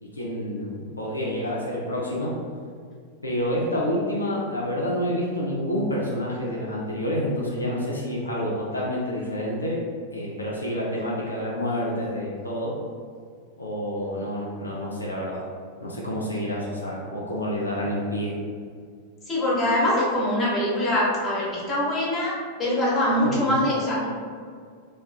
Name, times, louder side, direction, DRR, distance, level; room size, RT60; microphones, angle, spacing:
voice 1, 0.0-2.3 3.2-9.8 10.1-12.7 13.6-15.4 15.8-18.3 23.2-23.5, equal, 80° left, -5 dB, 0.4 m, -28 dB
voice 2, 19.3-24.1, left 1 dB, 20° left, -7 dB, 0.8 m, -23 dB
2.4 x 2.3 x 2.3 m, 2.1 s
figure-of-eight pair, 90°, 0 cm